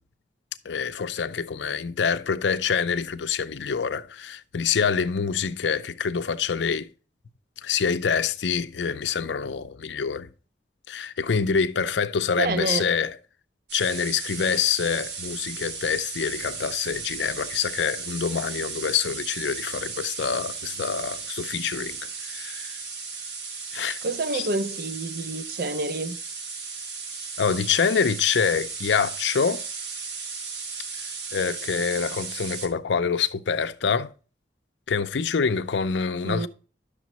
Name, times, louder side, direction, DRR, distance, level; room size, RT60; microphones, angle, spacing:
voice 1, 0.6-6.9 7.6-10.3 10.9-13.1 13.7-22.8 23.7-24.0 24.3-24.4 27.4-29.6 31.3-34.1 34.9-36.5, left 6 dB, 85° left, 0.5 m, -26 dB
voice 2, 12.4-12.9 24.0-26.2 36.2-36.5, right 3 dB, 55° right, 0.6 m, -28 dB
sound 1, 13.7-32.7, right 5 dB, 75° right, 1.2 m, -35 dB
10.5 x 6.7 x 2.9 m
head